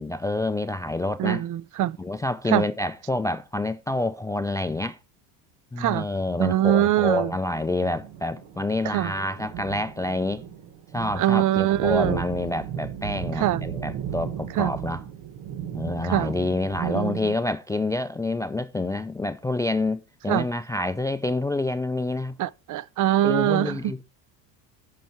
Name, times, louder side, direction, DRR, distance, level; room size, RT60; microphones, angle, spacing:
voice 1, 0.0-1.4 2.0-5.0 5.7-10.4 10.9-15.0 15.7-22.4 23.2-24.0, left 2 dB, 10° left, 0.3 m, -27 dB
voice 2, 1.2-2.0 2.5-2.6 5.8-6.1 6.4-7.3 8.9-9.1 11.2-12.2 13.3-13.6 14.6-14.7 16.0-16.3 16.8-17.3 20.3-20.5 22.4-23.9, right 13 dB, 45° right, 0.5 m, -23 dB
sound 1, 7.5-16.9, right 9 dB, 65° right, 1.5 m, -36 dB
9.2 x 5.8 x 4.5 m
supercardioid pair, 80°, 46 cm